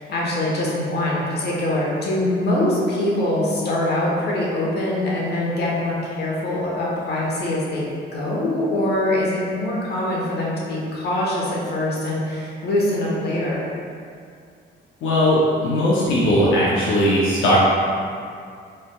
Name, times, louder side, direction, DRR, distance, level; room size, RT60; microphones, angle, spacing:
voice 1, 0.0-13.6, left 1 dB, 55° left, -5 dB, 1.0 m, -23 dB
voice 2, 15.0-17.6, equal, 90° left, -7 dB, 0.6 m, -18 dB
4.1 x 3.2 x 2.2 m, 2.3 s
cardioid pair, 90°, 20 cm